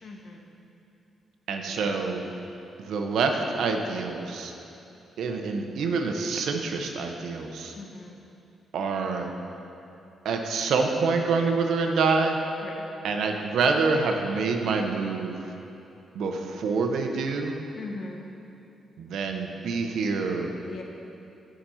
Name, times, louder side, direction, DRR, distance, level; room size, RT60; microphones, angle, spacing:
voice 1, 0.0-0.4 1.7-1.9 7.7-8.2 12.6-12.8 17.8-18.2 20.7-20.8, left 3 dB, 50° left, 1 dB, 1.0 m, -39 dB
voice 2, 1.5-2.2 2.8-4.5 5.2-7.8 8.7-9.3 10.2-12.4 13.0-15.4 16.1-17.6 19.0-20.5, right 4 dB, 75° right, 4 dB, 0.7 m, -26 dB
8.9 x 5.0 x 5.6 m, 2.8 s
cardioid pair, 130°, 0 cm